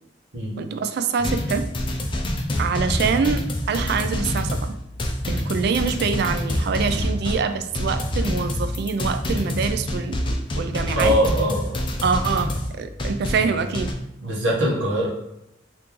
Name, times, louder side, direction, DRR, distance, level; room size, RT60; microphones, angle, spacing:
voice 1, 0.6-1.7 2.6-4.8 5.3-11.2 12.0-13.9, right 5 dB, 60° right, 9 dB, 0.3 m, -25 dB
sound 1, 1.2-13.9, left 1 dB, 25° left, 0.4 m, -26 dB
voice 2, 10.9-11.9 14.2-15.1, equal, 85° right, -3 dB, 0.8 m, -22 dB
3.5 x 2.5 x 2.9 m, 0.85 s
head